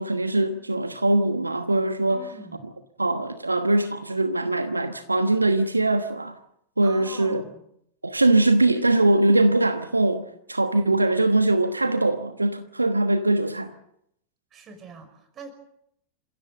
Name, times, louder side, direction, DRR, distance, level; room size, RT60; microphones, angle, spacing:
voice 1, 0.0-2.2 3.0-6.4 6.8-7.4 8.0-13.7, right 2 dB, 80° right, 1.2 m, -22 dB
voice 2, 2.1-2.7 6.8-7.6 14.5-15.5, right 4 dB, 30° right, 5.8 m, -43 dB
28.5 x 16.0 x 7.7 m
figure-of-eight pair, 90°, 0 cm